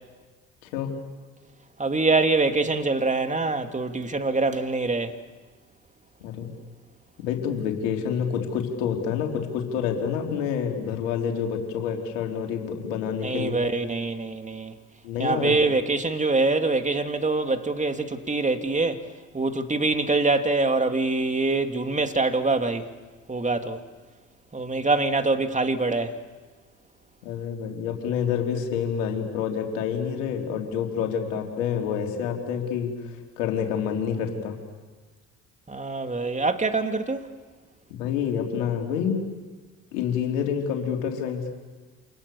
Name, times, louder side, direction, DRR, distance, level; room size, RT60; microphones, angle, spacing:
voice 1, 0.6-1.0 6.2-6.5 7.2-13.6 15.0-15.6 27.2-34.6 37.9-39.2 39.9-41.5, left 7 dB, 80° left, 3.9 m, -28 dB
voice 2, 1.8-5.2 13.2-14.7 15.2-19.0 19.3-22.9 23.3-23.8 24.5-26.2 35.7-37.3, right 3 dB, 20° right, 2.8 m, -24 dB
29.0 x 27.0 x 7.2 m
hypercardioid pair, 60°, 37 cm